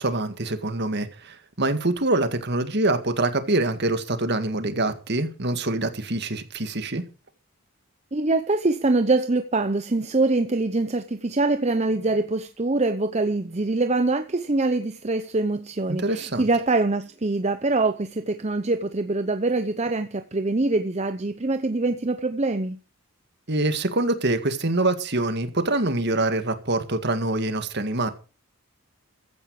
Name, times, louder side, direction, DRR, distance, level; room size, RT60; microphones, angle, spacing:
voice 1, 0.0-7.0 16.0-16.5 23.5-28.1, right 2 dB, 50° right, 1.9 m, -25 dB
voice 2, 8.1-22.8, right 2 dB, 30° right, 0.7 m, -24 dB
15.5 x 10.5 x 4.8 m
head